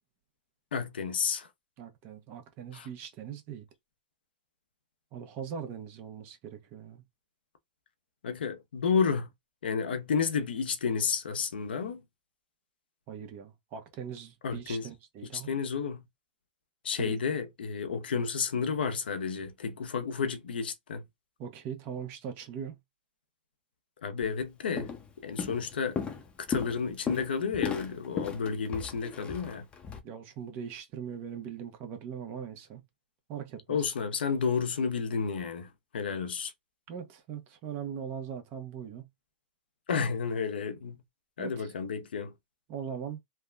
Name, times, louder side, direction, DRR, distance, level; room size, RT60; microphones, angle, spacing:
voice 1, 0.7-1.5 2.7-2.9 8.2-9.3 9.6-12.0 14.4-14.9 15.3-16.0 16.8-21.0 24.0-24.9 25.2-26.0 26.5-29.6 33.7-35.7 35.9-36.5 39.9-41.0 41.4-42.3, left 6 dB, 85° left, 0.6 m, -31 dB
voice 2, 1.8-3.7 5.1-7.0 13.1-15.6 17.0-17.1 21.4-22.8 25.4-25.6 30.0-32.8 33.3-33.9 36.9-39.1 41.4-41.7 42.7-43.2, right 7 dB, 40° right, 1.0 m, -40 dB
Walk footsteps, 24.2-24.4 24.8-25.1 25.4-30.0, left 6 dB, 20° left, 0.6 m, -36 dB
3.4 x 2.1 x 2.4 m
hypercardioid pair, 125°, 5 cm